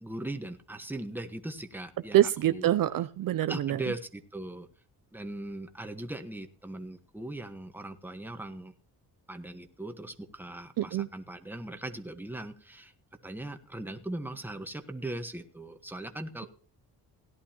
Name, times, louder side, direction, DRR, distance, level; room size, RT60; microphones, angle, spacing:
voice 1, 0.0-2.7 3.5-4.7 5.1-8.7 9.3-12.9 13.2-16.5, right 1 dB, 5° right, 6 dB, 1.3 m, -39 dB
voice 2, 2.1-3.8 10.8-11.1, right 13 dB, 60° right, 13 dB, 0.6 m, -25 dB
17.5 x 11.0 x 2.9 m, 0.40 s
cardioid pair, 95°, 38 cm